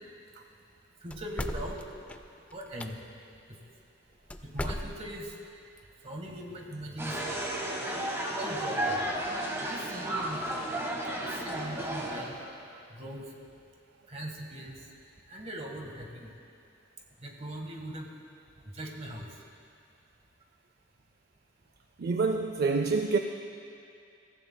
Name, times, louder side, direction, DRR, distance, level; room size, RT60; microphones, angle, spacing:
voice 1, 1.0-1.8 2.5-3.0 4.4-5.3 6.0-7.4 8.4-9.0 9.6-10.6 11.2-12.4 12.9-13.2 14.1-14.7 15.3-16.3 17.2-18.1 18.7-19.3, right 1 dB, 35° right, 1 dB, 1.5 m, -40 dB
sound 1, 1.1-2.9 4.3-5.3, left 1 dB, 10° left, 0.4 m, -37 dB
sound 2, 7.0-12.3, right 1 dB, 15° right, 1.3 m, -33 dB
voice 2, 22.0-23.2, right 4 dB, 50° right, 5 dB, 0.4 m, -27 dB
22.5 x 14.5 x 2.2 m, 2.5 s
head